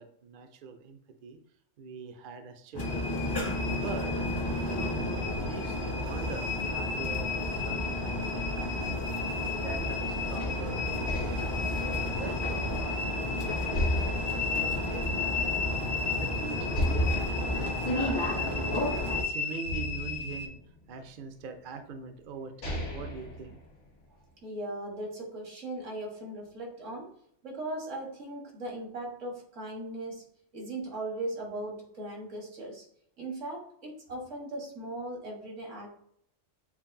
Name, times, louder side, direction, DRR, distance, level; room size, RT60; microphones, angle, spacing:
voice 1, 0.0-1.4 1.8-3.1 3.7-4.1 4.6-11.6 11.8-13.0 13.4-14.1 14.5-15.7 16.1-18.9 19.2-20.6 20.9-23.6, right 5 dB, 55° right, 6 dB, 0.6 m, -43 dB
sound 1, 2.7-19.2, left 1 dB, 30° left, 0.5 m, -32 dB
sound 2, 2.8-20.5, left 5 dB, 55° left, 0.8 m, -36 dB
sound 3, 10.4-13.2 13.7-15.7 16.0-16.1 16.7-19.1 19.6-21.2 22.0-22.1 22.4-24.2, left 1 dB, 75° left, 1.5 m, -36 dB
voice 2, 24.4-27.1 27.4-30.2 30.5-32.9 33.2-35.9, right 1 dB, 80° right, -2 dB, 1.8 m, -38 dB
7.0 x 2.5 x 2.6 m, 0.70 s
omnidirectional pair, 1.3 m